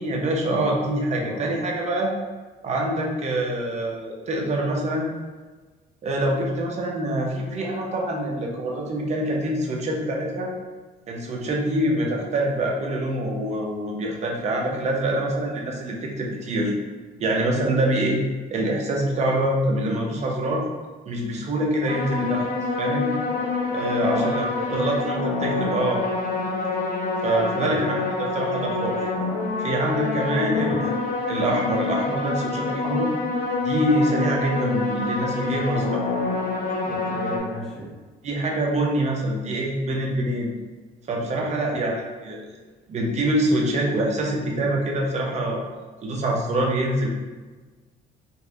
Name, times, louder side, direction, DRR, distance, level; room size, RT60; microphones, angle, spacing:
voice 1, 0.0-2.1 2.6-5.1 6.0-10.5 11.1-16.7 17.2-18.2 18.5-20.7 21.1-22.5 22.8-23.1 23.7-24.5 24.7-26.0 27.2-29.0 29.6-30.9 31.3-33.1 33.6-36.1 38.2-40.5 41.1-42.4 42.9-45.6 46.0-47.1, right 1 dB, 40° right, -1 dB, 0.7 m, -25 dB
sound 1, 21.9-37.4, left 3 dB, 55° left, 0.7 m, -26 dB
voice 2, 24.0-24.8 27.6-28.0 30.5-30.8 36.8-37.9 41.6-41.9, equal, ahead, -6 dB, 1.0 m, -33 dB
4.0 x 2.6 x 2.4 m, 1.3 s
cardioid pair, 110°, 17 cm